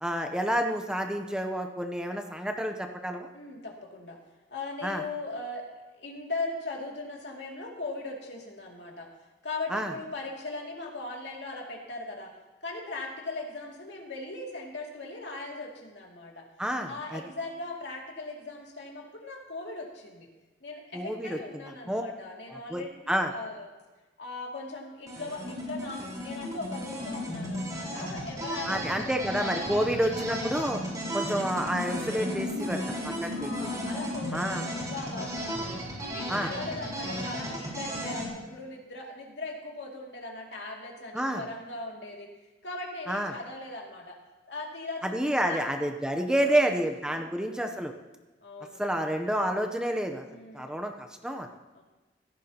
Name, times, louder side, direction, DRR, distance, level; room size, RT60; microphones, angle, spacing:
voice 1, 0.0-3.3 4.8-5.0 9.7-9.9 16.6-17.2 20.9-21.6 21.9-22.0 22.5-23.3 28.7-30.8 31.1-33.7 34.3-34.6 36.3-36.5 41.1-41.4 43.1-43.3 45.0-47.9 48.8-50.2 50.5-51.5, equal, 5° right, 4 dB, 0.7 m, -29 dB
voice 2, 3.3-4.2 4.5-5.7 5.9-9.1 9.4-12.3 12.6-16.5 16.9-20.3 20.6-23.7 24.2-29.1 29.6-29.8 30.1-30.2 31.0-31.3 33.3-35.7 36.0-42.3 42.6-44.2 44.5-45.6 46.3-46.7 47.2-47.3 48.4-48.8 50.3-50.7 51.7-51.8, left 2 dB, 70° left, -1 dB, 2.5 m, -39 dB
sound 1, 25.0-38.3, equal, 20° right, 4.3 m, -34 dB
16.5 x 14.5 x 2.9 m, 1.2 s
head